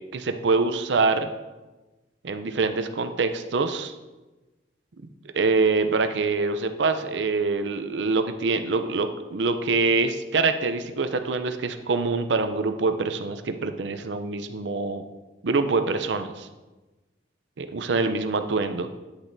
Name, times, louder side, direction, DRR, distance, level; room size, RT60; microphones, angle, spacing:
voice 1, 0.1-1.3 2.2-3.9 5.3-15.0 15.4-16.5 17.6-18.9, right 3 dB, 75° right, 8 dB, 0.6 m, -25 dB
9.8 x 8.9 x 2.7 m, 1.1 s
head